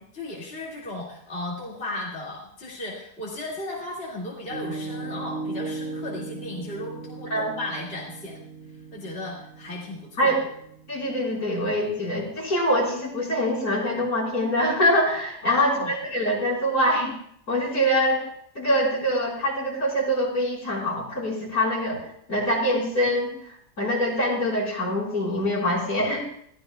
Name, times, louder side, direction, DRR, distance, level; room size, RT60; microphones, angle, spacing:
voice 1, 0.1-8.4 8.9-10.4 15.4-15.9, left 2 dB, 40° left, -4 dB, 2.4 m, -35 dB
Piano, 4.5-12.4, right 3 dB, 40° right, 2.9 m, -38 dB
voice 2, 10.9-17.1 17.5-18.3 18.5-23.3 23.8-26.2, equal, 65° left, -5 dB, 4.9 m, -24 dB
22.5 x 14.5 x 2.3 m, 0.69 s
omnidirectional pair, 1.7 m